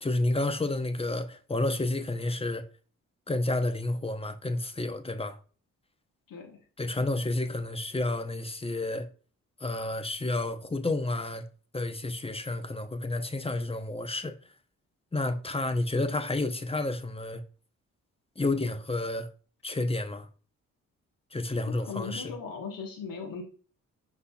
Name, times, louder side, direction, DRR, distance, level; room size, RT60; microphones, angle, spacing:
voice 1, 0.0-2.6 3.3-5.4 6.8-9.1 9.6-11.4 11.7-14.4 15.1-17.4 18.4-19.3 19.6-20.3 21.3-22.3, left 2 dB, 15° left, 0.7 m, -30 dB
voice 2, 6.3-6.6 21.6-23.4, left 5 dB, 70° left, 1.4 m, -38 dB
5.3 x 4.0 x 2.4 m
supercardioid pair, 50°, 35 cm